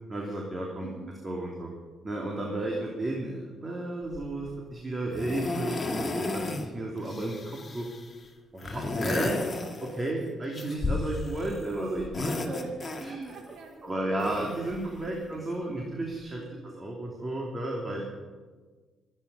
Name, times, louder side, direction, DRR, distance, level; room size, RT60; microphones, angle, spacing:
voice 1, 0.1-0.9 1.2-1.7 2.0-7.9 8.5-12.7 13.0-13.3 13.8-16.4 16.7-18.0, right 1 dB, 25° right, -1 dB, 2.9 m, -33 dB
voice 2, 0.8-1.2 2.6-3.0 12.6-14.4 15.0-15.3 15.6-15.8 16.4-16.7, right 4 dB, 65° right, 0 dB, 4.3 m, -49 dB
sound 1, 4.1-4.5 5.1-6.7 7.0-8.1 8.6-10.1 10.5-11.6 12.0-13.4 14.2-15.2 16.1-16.2, left 2 dB, 30° left, 2.1 m, -33 dB
23.0 x 9.8 x 5.7 m, 1.4 s
cardioid pair, 90°, 0 cm